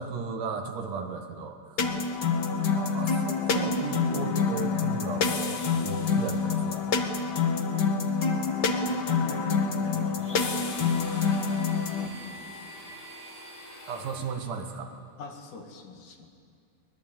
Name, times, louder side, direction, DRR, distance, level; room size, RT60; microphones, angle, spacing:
voice 1, 0.0-1.6 2.7-6.8 13.9-14.9, right 5 dB, 70° right, 5 dB, 3.1 m, -35 dB
sound 1, 1.8-12.1, left 5 dB, 55° left, 1.2 m, -27 dB
voice 2, 8.9-12.8 15.2-16.3, left 5 dB, 70° left, 3 dB, 3.6 m, -45 dB
Domestic sounds home sounds, 10.2-14.6, equal, 5° left, 4.5 m, -45 dB
24.0 x 20.0 x 9.0 m, 2.3 s
omnidirectional pair, 3.8 m